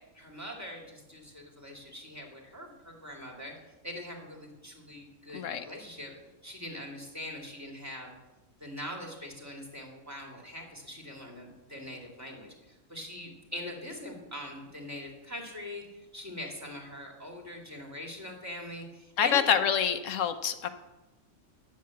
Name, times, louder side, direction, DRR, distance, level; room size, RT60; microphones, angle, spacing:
voice 1, 0.1-3.5 3.8-6.1 6.4-8.1 8.6-19.4, left 1 dB, 10° right, -1 dB, 2.3 m, -42 dB
voice 2, 5.3-5.6 19.2-20.7, left 8 dB, 80° left, 8 dB, 1.1 m, -26 dB
10.0 x 7.6 x 8.3 m, 1.1 s
omnidirectional pair, 1.3 m